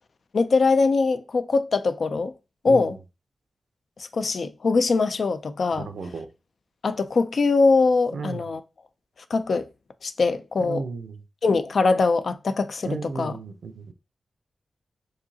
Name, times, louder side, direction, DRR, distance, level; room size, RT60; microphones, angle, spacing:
voice 1, 0.3-2.3 2.6-3.0 4.1-5.9 6.8-8.6 9.3-9.6 10.0-10.8 11.4-13.4, left 4 dB, 60° left, 0.4 m, -22 dB
voice 2, 5.7-6.3 8.1-8.4 10.6-11.2 12.9-13.9, right 4 dB, 85° right, 0.6 m, -33 dB
4.9 x 2.8 x 2.7 m
wide cardioid pair, 95°, 0 cm